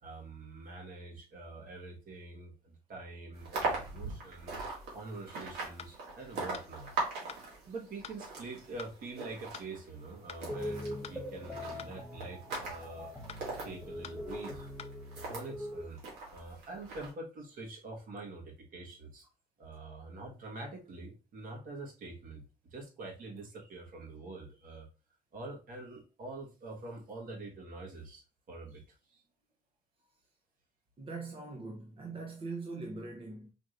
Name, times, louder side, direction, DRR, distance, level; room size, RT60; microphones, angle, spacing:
voice 1, 0.0-4.7 4.9-6.9 7.7-13.1 13.6-14.7 15.3-16.0 16.3-19.2 19.6-22.4 22.7-24.9 25.3-28.2 28.5-29.2, right 2 dB, 55° right, 1.6 m, -45 dB
sound 1, 3.3-15.5 16.0-17.1, right 3 dB, 85° right, 2.0 m, -41 dB
sound 2, 5.8-5.9 6.5-6.7 7.3-7.4 8.0-8.2 8.8-8.9 9.5-9.7 10.3-10.4 11.0-11.2 11.8-11.9 12.5-12.7 13.3-13.4 14.0-14.2 14.8-14.9, left 8 dB, 40° left, 0.4 m, -46 dB
sound 3, 10.5-15.8, left 1 dB, ahead, 1.0 m, -42 dB
voice 2, 31.0-33.5, right 3 dB, 30° right, 0.8 m, -42 dB
5.0 x 3.2 x 2.6 m
cardioid pair, 110°, 17 cm